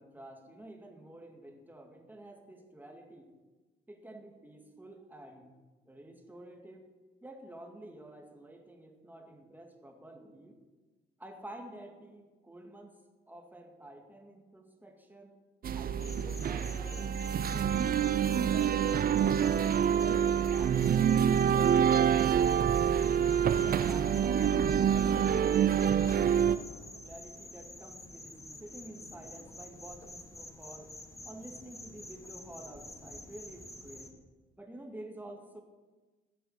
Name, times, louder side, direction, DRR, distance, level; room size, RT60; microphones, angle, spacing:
voice 1, 0.0-3.3 3.9-5.5 5.9-6.9 7.2-10.6 11.2-13.0 13.3-15.4 15.7-20.0 20.6-22.8 23.3-25.4 26.0-26.7 27.0-31.0 31.2-34.1 34.6-35.6, right 1 dB, 10° right, 3 dB, 2.0 m, -50 dB
sound 1, 15.6-26.6, right 8 dB, 45° right, 0.5 m, -26 dB
sound 2, 16.0-34.1, left 2 dB, 15° left, 1.4 m, -48 dB
16.0 x 6.9 x 6.6 m, 1.2 s
cardioid pair, 90°, 20 cm